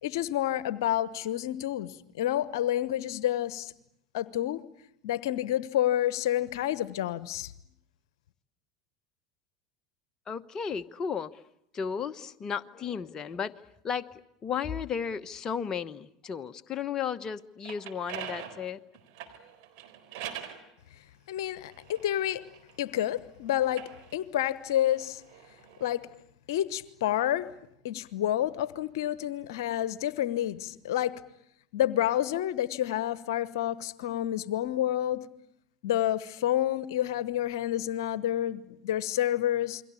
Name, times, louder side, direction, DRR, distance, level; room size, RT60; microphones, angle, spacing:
voice 1, 0.0-3.7 4.1-4.6 5.0-7.5 21.3-22.4 22.8-23.8 24.1-25.2 25.8-26.0 26.5-27.5 27.8-31.1 31.7-35.2 35.8-39.8, left 12 dB, 70° left, 17 dB, 1.1 m, -29 dB
voice 2, 10.3-11.3 11.7-13.5 13.8-14.1 14.4-18.8, left 7 dB, 30° left, 8 dB, 1.1 m, -34 dB
sound 1, 17.4-20.6 21.4-23.1 23.6-25.9, right 10 dB, 60° right, 4.1 m, -44 dB
29.0 x 23.0 x 8.5 m, 0.74 s
hypercardioid pair, 80°, 2 cm